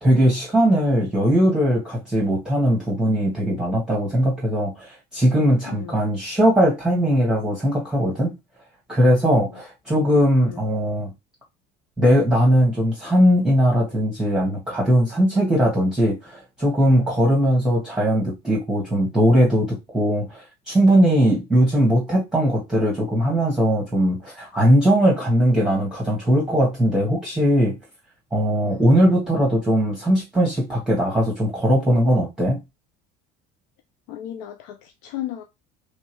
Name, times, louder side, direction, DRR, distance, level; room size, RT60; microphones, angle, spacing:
voice 1, 0.0-8.3 8.9-11.1 12.0-27.8 28.3-32.6, equal, 5° right, 1.2 m, -19 dB
voice 2, 5.7-6.0 9.5-9.6 10.4-10.6 28.6-29.0 34.1-35.4, left 12 dB, 85° left, 0.5 m, -35 dB
3.2 x 2.7 x 3.0 m
supercardioid pair, 95°, 21 cm